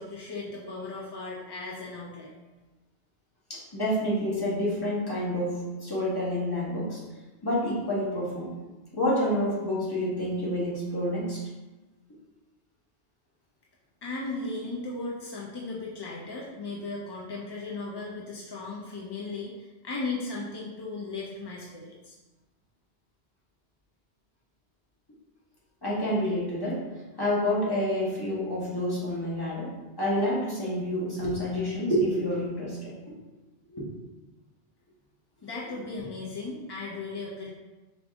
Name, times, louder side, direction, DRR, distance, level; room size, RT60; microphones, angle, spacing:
voice 1, 0.0-2.3 14.0-22.1 35.4-37.5, left 3 dB, 40° left, -4 dB, 0.3 m, -36 dB
voice 2, 3.5-7.0 7.4-8.5 8.9-11.4 25.8-26.8 27.2-29.7 30.0-33.0 33.7-33.8, equal, 20° left, -7 dB, 1.1 m, -28 dB
5.0 x 2.5 x 3.5 m, 1.2 s
omnidirectional pair, 1.1 m